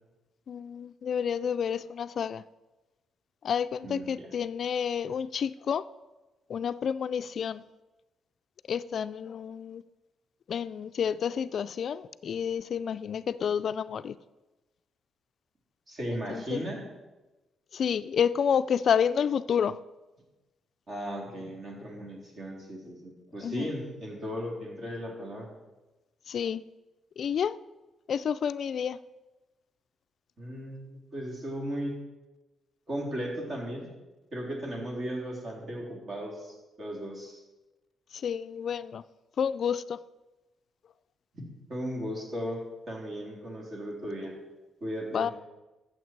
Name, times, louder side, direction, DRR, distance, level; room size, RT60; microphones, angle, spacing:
voice 1, 0.5-2.4 3.4-5.8 6.5-7.6 8.7-9.8 10.5-14.2 16.1-16.6 17.7-19.8 23.4-23.7 26.3-26.6 27.2-27.6 28.1-29.0 38.1-39.0 39.4-40.0 45.1-45.3, left 7 dB, 60° left, 14 dB, 0.3 m, -29 dB
voice 2, 3.8-4.3 15.9-16.8 20.9-25.5 30.4-32.0 32.9-33.9 34.3-37.4 41.3-41.4 41.7-42.6 42.9-44.3 44.8-45.3, equal, 45° right, -2 dB, 3.7 m, -36 dB
14.0 x 7.2 x 4.6 m, 1.1 s
cardioid pair, 100°, 0 cm